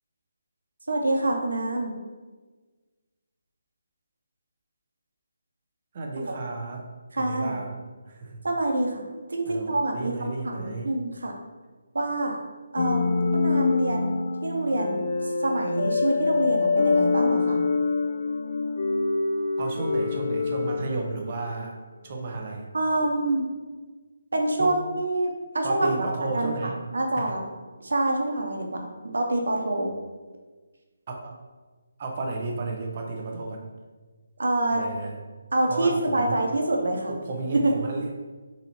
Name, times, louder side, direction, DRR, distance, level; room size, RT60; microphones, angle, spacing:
voice 1, 0.9-2.0 6.2-6.4 7.1-7.6 8.4-9.0 9.3-11.3 11.9-12.4 12.7-17.6 22.7-23.5 24.3-26.5 26.9-27.5 27.8-29.9 34.4-34.8 35.5-37.2 37.5-37.7, right 2 dB, 90° right, 1 dB, 0.9 m, -26 dB
voice 2, 5.9-6.8 7.2-7.8 8.1-8.4 9.4-10.9 19.6-21.8 22.0-22.7 24.6-24.8 25.6-26.8 27.2-27.3 31.1-31.4 32.0-33.6 34.7-35.2 35.7-36.4 37.1-38.1, right 3 dB, 25° right, 1 dB, 0.6 m, -32 dB
sound 1, 12.8-21.7, left 4 dB, 35° left, 0.3 m, -25 dB
4.6 x 4.0 x 2.8 m, 1.3 s
hypercardioid pair, 180°, 0 cm